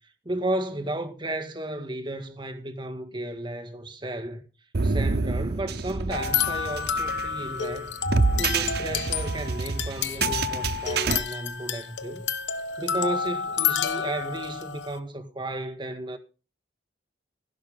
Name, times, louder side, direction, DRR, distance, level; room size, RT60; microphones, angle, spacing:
voice 1, 0.3-4.4 4.8-8.0 8.4-12.3 12.8-16.2, right 1 dB, 25° right, 1.8 m, -33 dB
sound 1, 4.7-11.2, right 4 dB, 60° right, 0.7 m, -27 dB
sound 2, 6.1-15.0, left 7 dB, 80° left, 1.2 m, -29 dB
16.5 x 11.0 x 3.7 m
head